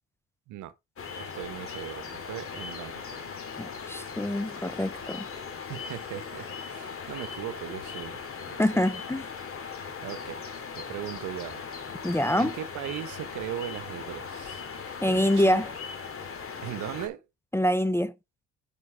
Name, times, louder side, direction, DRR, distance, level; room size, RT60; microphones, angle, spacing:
sound 1, 1.0-17.1, left 5 dB, 45° left, 2.3 m, -39 dB
voice 1, 1.2-3.4 5.7-8.6 10.0-14.7 15.1-15.6 16.6-17.2, right 12 dB, 75° right, 0.9 m, -39 dB
voice 2, 3.6-5.3 8.6-9.3 12.0-12.5 15.0-15.7 17.5-18.1, left 1 dB, 10° left, 0.5 m, -25 dB
9.4 x 5.3 x 3.3 m
supercardioid pair, 60°, 31 cm